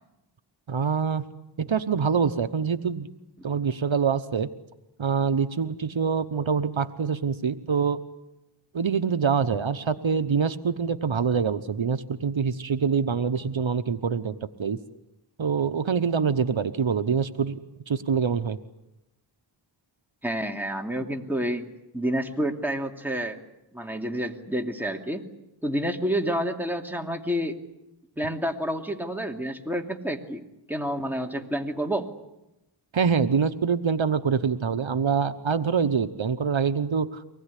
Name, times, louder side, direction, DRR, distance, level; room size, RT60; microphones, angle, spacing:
voice 1, 0.7-1.2 1.6-3.1 3.4-4.5 5.0-8.0 8.7-14.8 15.4-17.6 17.9-18.6 32.9-37.2, right 6 dB, 70° right, 10 dB, 1.0 m, -25 dB
voice 2, 20.2-21.6 21.9-23.4 23.7-25.2 25.6-27.6 28.2-30.4 30.7-32.1, equal, 5° right, 2 dB, 2.7 m, -29 dB
24.5 x 20.0 x 9.9 m, 0.94 s
wide cardioid pair, 65°, 48 cm